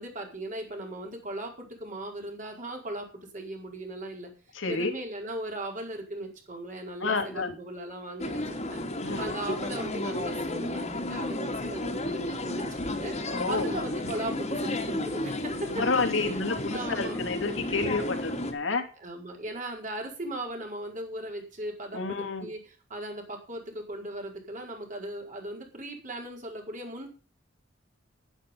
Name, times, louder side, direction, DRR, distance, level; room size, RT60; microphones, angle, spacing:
voice 1, 0.0-4.3 4.7-8.8 9.2-16.3 16.7-17.2 19.0-27.1, right 1 dB, 40° right, 1 dB, 4.9 m, -38 dB
voice 2, 4.5-4.9 7.0-7.5 9.0-9.3 13.3-13.7 15.8-18.8 21.9-22.5, left 3 dB, 75° left, 5 dB, 2.8 m, -29 dB
sound 1, 8.2-18.5, left 1 dB, 35° left, 2.4 m, -32 dB
11.0 x 11.0 x 5.4 m, 0.36 s
head